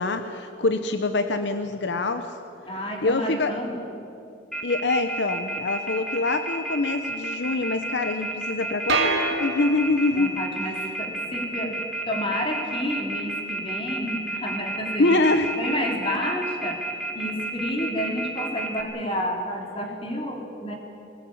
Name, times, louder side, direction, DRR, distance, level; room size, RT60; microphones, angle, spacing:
voice 1, 0.0-2.4 3.0-3.5 4.6-10.4 15.0-15.5, left 2 dB, 75° left, 8 dB, 1.0 m, -24 dB
voice 2, 2.7-3.8 10.1-15.2 15.6-16.8 17.1-20.7, equal, 30° left, 1 dB, 3.4 m, -30 dB
Telephone, 4.5-18.8, right 2 dB, 5° left, 2.3 m, -31 dB
sound 1, 8.9-10.3, right 4 dB, 80° right, 3.4 m, -26 dB
20.5 x 19.5 x 8.7 m, 2.8 s
head